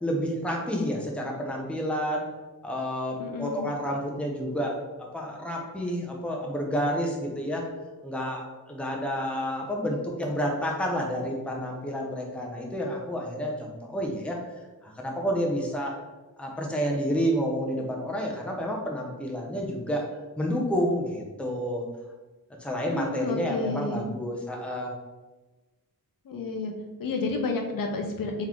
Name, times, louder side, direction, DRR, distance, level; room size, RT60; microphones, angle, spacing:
voice 1, 0.0-2.2 2.6-7.6 8.0-14.4 14.8-16.0 16.4-20.0 20.4-21.8 22.6-24.9, equal, 5° left, -1 dB, 0.7 m, -29 dB
voice 2, 3.2-3.7 22.9-24.0 26.3-26.7 27.0-28.5, left 3 dB, 65° left, 2 dB, 0.6 m, -30 dB
3.8 x 3.1 x 3.6 m, 1.2 s
wide cardioid pair, 110°, 36 cm